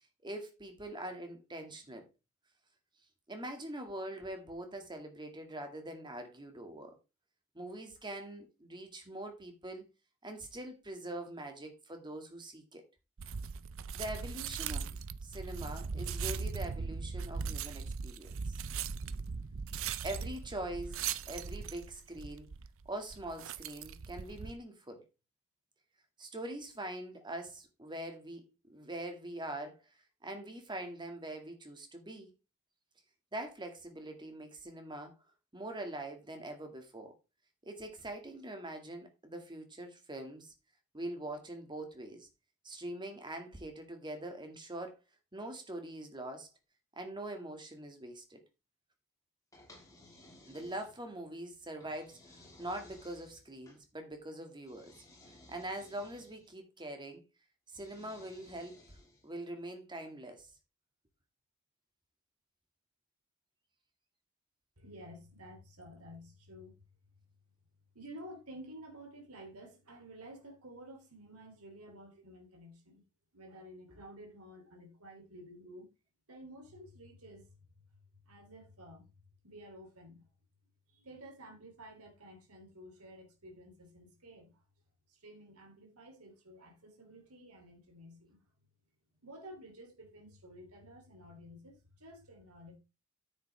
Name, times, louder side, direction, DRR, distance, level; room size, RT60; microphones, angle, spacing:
voice 1, 0.2-2.1 3.3-7.0 7.5-9.9 10.2-12.8 13.9-18.6 20.0-22.5 22.9-25.0 26.2-28.4 28.7-29.8 30.2-32.3 33.3-35.2 35.5-37.1 37.6-40.5 40.9-42.3 42.6-45.0 45.3-46.5 47.0-48.4 50.5-54.9 55.3-57.2 57.7-59.0 59.2-60.5, right 1 dB, 20° right, 2.1 m, -43 dB
sound 1, 13.2-24.6, right 6 dB, 65° right, 0.6 m, -39 dB
sound 2, 49.5-51.2 51.8-53.8 54.6-56.5 57.7-59.3, left 1 dB, 15° left, 3.2 m, -58 dB
voice 2, 64.8-66.8 67.9-73.0 73.3-75.9 76.3-77.6 78.2-79.1 79.4-80.3 80.9-84.6 85.1-88.4 89.2-92.8, equal, 85° right, 3.2 m, -52 dB
9.5 x 7.9 x 3.4 m
head